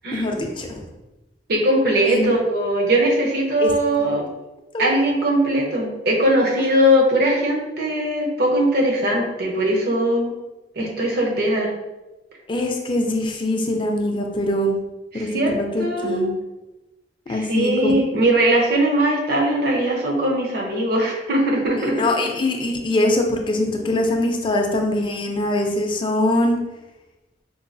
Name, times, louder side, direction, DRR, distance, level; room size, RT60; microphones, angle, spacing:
voice 1, 0.1-0.8 2.1-2.3 3.6-3.7 4.0-4.1 4.7-4.9 12.5-14.8 15.1-16.4 17.3-17.9 21.8-26.6, left 1 dB, 30° left, 2 dB, 0.4 m, -23 dB
voice 2, 1.5-4.3 4.8-10.3 10.8-11.7 15.1-16.3 17.3-22.0, right 1 dB, 60° right, -1 dB, 0.8 m, -20 dB
4.5 x 2.3 x 2.6 m, 1.0 s
head